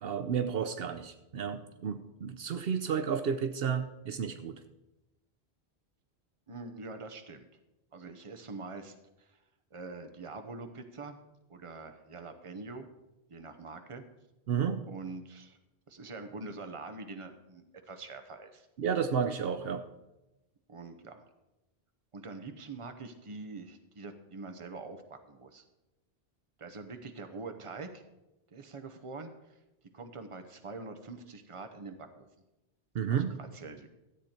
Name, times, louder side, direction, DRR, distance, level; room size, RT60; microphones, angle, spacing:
voice 1, 0.0-4.6 14.5-14.8 18.8-19.8 32.9-33.4, right 7 dB, 70° right, 10 dB, 0.9 m, -32 dB
voice 2, 6.5-7.5 7.9-9.4 9.7-11.2 11.5-12.9 13.3-14.0 14.9-15.6 15.9-18.7 20.7-21.2 22.1-25.6 26.6-28.0 28.5-29.6 29.9-32.3 33.1-33.9, right 3 dB, 35° right, 6 dB, 0.9 m, -44 dB
13.0 x 8.2 x 4.4 m, 0.98 s
omnidirectional pair, 1.0 m